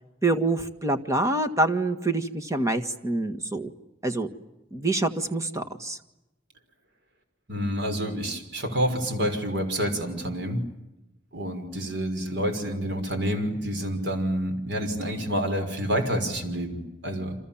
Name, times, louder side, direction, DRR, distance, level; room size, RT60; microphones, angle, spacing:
voice 1, 0.2-3.7 4.0-4.3 4.7-6.0, right 2 dB, 15° right, 7 dB, 1.7 m, -26 dB
voice 2, 7.5-10.6 11.3-17.4, equal, 65° right, 6 dB, 5.8 m, -28 dB
29.5 x 26.5 x 7.4 m, 0.95 s
head